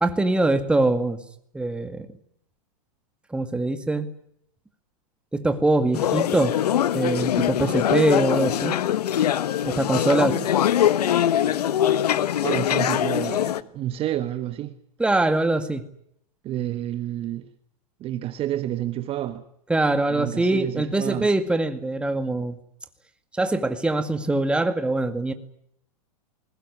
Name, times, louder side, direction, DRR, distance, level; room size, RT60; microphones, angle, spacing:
voice 1, 0.0-1.2 1.5-2.1 3.3-4.1 5.3-6.5 6.9-8.8 9.7-10.4 15.0-15.8 19.7-22.6 23.3-25.3, right 2 dB, 5° right, 2.0 m, -23 dB
sound 1, 5.9-13.6, left 10 dB, 85° left, 1.3 m, -22 dB
voice 2, 10.0-10.5 12.4-14.7 16.4-17.5 18.0-19.5 20.1-21.3, right 12 dB, 30° right, 1.4 m, -29 dB
21.5 x 19.0 x 9.6 m
hypercardioid pair, 140°, 20 cm